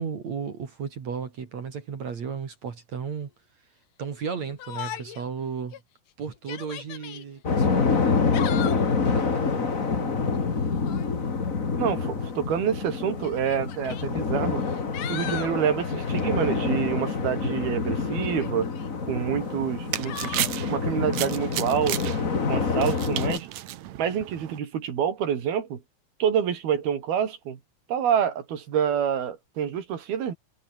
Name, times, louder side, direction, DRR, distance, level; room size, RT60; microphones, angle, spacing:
voice 1, 0.0-3.3 4.0-5.8 6.2-8.3 9.1-10.7, right 6 dB, 50° right, 3.7 m, -35 dB
Yell, 4.6-5.3 5.7-5.8 6.3-7.2 8.1-8.9 10.7-11.1 12.3-12.4 13.2-14.1 14.6-15.6 18.2-18.9 20.1-20.5, left 11 dB, 65° left, 3.0 m, -37 dB
sound 1, 7.4-23.4, left 5 dB, 30° left, 1.8 m, -27 dB
voice 2, 11.8-14.6 15.1-18.7 19.1-22.2 22.5-23.5 24.0-25.8 26.2-27.6 27.9-30.3, right 8 dB, 90° right, 4.8 m, -27 dB
sound 2, 19.4-24.6, right 14 dB, 70° right, 1.9 m, -34 dB
omnidirectional pair, 4.2 m